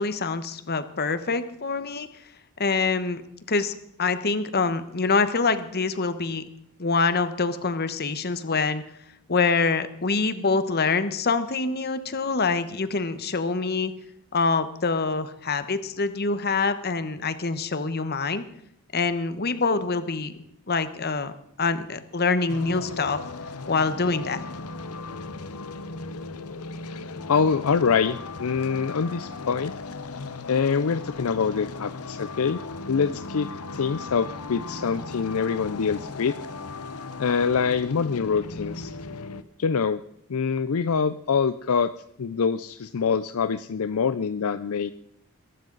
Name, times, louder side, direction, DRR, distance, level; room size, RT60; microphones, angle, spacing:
voice 1, 0.0-2.1 2.6-3.2 3.5-6.4 6.8-8.8 9.3-13.9 14.3-18.4 18.9-20.3 20.7-21.3 21.6-23.2 23.7-24.4, left 4 dB, 45° left, 11 dB, 1.1 m, -25 dB
sound 1, 22.5-39.4, left 3 dB, 90° left, 0.9 m, -37 dB
voice 2, 26.8-29.7 30.5-32.6 32.9-36.3 37.2-38.9 39.6-40.0 40.3-41.9 42.2-44.9, left 5 dB, 70° left, 13 dB, 0.5 m, -25 dB
22.5 x 12.5 x 4.0 m, 0.74 s
head